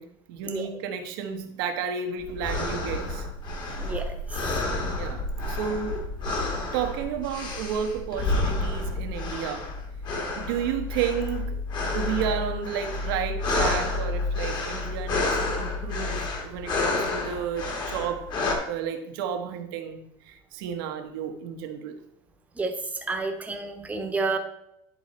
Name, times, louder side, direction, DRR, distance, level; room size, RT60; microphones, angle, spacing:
voice 1, 0.0-3.3 4.8-5.2 5.5-6.0 6.7-9.7 10.4-11.6 11.9-18.3 18.7-22.0, right 8 dB, 90° right, 5 dB, 1.1 m, -32 dB
sound 1, 2.2-18.6, left 2 dB, 40° left, 1.6 m, -29 dB
voice 2, 23.0-24.4, right 3 dB, 10° right, 5 dB, 0.9 m, -29 dB
10.0 x 4.0 x 4.2 m, 0.77 s
cardioid pair, 140°, 12 cm